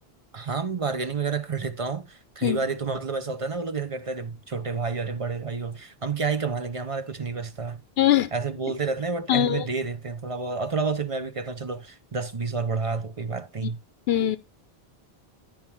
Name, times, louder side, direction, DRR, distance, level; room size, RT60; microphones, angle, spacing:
voice 1, 0.3-7.8 8.3-13.8, right 4 dB, 35° right, 0.8 m, -29 dB
voice 2, 8.0-8.3 9.3-9.7 14.1-14.4, left 12 dB, 70° left, 0.8 m, -21 dB
13.5 x 4.8 x 3.4 m
omnidirectional pair, 1.1 m